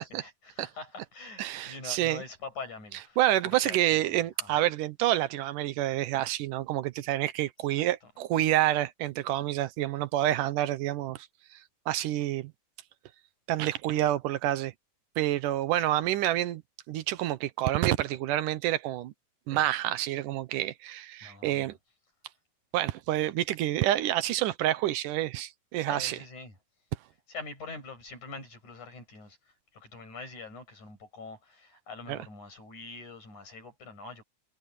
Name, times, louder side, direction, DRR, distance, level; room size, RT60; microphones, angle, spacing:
voice 1, 0.1-4.7 8.0-8.1 15.8-15.9 21.2-21.8 25.9-26.6 27.3-34.2, left 4 dB, 65° left, 9.3 m, -44 dB
voice 2, 1.4-2.2 3.2-11.3 11.9-12.5 13.5-14.7 15.2-16.6 16.9-19.1 19.5-21.7 22.7-26.2 32.1-32.2, right 14 dB, 85° right, 2.5 m, -28 dB
omnidirectional pair, 3.6 m